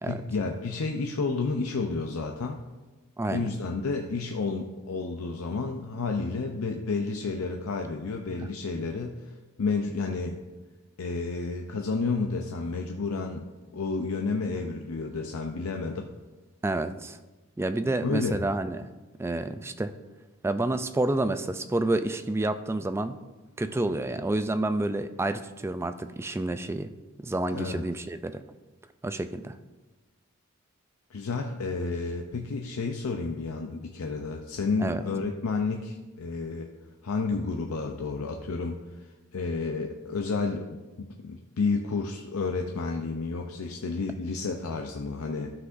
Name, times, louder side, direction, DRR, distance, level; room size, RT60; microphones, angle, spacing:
voice 1, 0.0-2.6 3.3-9.3 9.6-10.4 11.0-13.5 13.7-16.1 18.0-18.5 27.5-27.8 31.1-36.7 37.0-38.7 39.3-45.5, left 4 dB, 90° left, 3 dB, 0.6 m, -31 dB
voice 2, 3.2-3.5 8.4-8.5 16.6-17.2 17.6-18.9 19.2-19.9 20.4-23.2 23.6-26.9 27.2-28.4 29.0-29.6 34.8-35.0, right 2 dB, 10° right, 10 dB, 0.3 m, -29 dB
12.5 x 5.9 x 2.6 m, 1.2 s
head